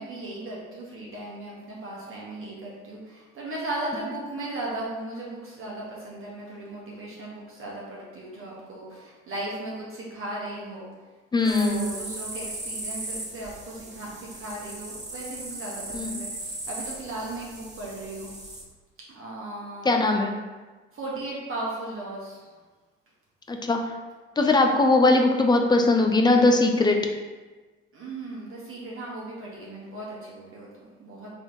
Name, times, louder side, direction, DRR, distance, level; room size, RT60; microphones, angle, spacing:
voice 1, 0.0-10.9 11.3-18.3 19.1-20.0 20.9-22.5 27.9-31.3, right 2 dB, 35° right, -5 dB, 1.1 m, -36 dB
voice 2, 11.3-11.9 15.9-16.2 19.8-20.4 23.5-23.8 24.4-27.0, left 2 dB, 15° left, 3 dB, 0.4 m, -20 dB
sound 1, 11.4-18.6, right 2 dB, 20° right, 0.8 m, -38 dB
3.3 x 3.1 x 4.0 m, 1.3 s
hypercardioid pair, 60°, 36 cm